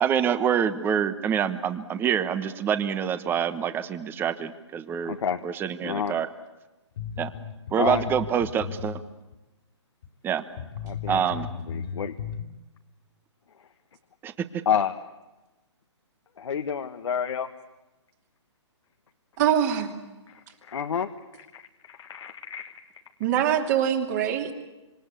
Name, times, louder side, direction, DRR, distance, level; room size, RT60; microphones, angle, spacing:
voice 1, 0.0-5.1 5.4-6.3 7.2-7.3 7.7-9.0 10.2-10.4 11.1-11.5 14.2-14.3, right 8 dB, 15° right, 12 dB, 1.3 m, -26 dB
voice 2, 5.1-5.4 5.8-6.1 7.7-8.0 10.8-11.4 11.7-12.2 14.7-15.1 16.4-17.5 20.3-21.1 21.5-22.7, left 7 dB, 75° left, 6 dB, 1.6 m, -29 dB
sound 1, 7.0-9.0 9.3-9.4 10.0-10.1 10.6-12.4, left 7 dB, 50° left, 2.8 m, -35 dB
voice 3, 19.4-20.0 23.2-24.5, right 9 dB, 35° right, 3 dB, 2.9 m, -23 dB
26.5 x 26.0 x 8.4 m, 1.1 s
hypercardioid pair, 150°, 15 cm